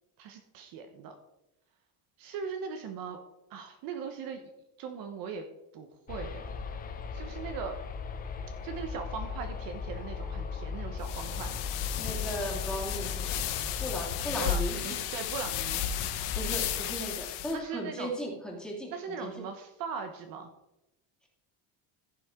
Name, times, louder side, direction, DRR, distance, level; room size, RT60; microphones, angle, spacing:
voice 1, 0.2-1.1 2.2-3.2 3.5-4.4 4.8-5.4 5.7-6.4 7.1-7.8 8.6-11.5 14.4-15.8 17.5-18.1 18.9-20.5, right 6 dB, 50° right, 6 dB, 1.1 m, -39 dB
sound 1, 6.1-14.1, left 5 dB, 20° left, 0.6 m, -38 dB
sound 2, 11.0-17.5, left 9 dB, 75° left, 1.3 m, -33 dB
voice 2, 12.0-13.4 13.8-15.0 16.4-18.9 19.2-19.4, equal, ahead, -4 dB, 2.5 m, -37 dB
15.5 x 6.0 x 3.7 m, 0.92 s
cardioid pair, 170°, 43 cm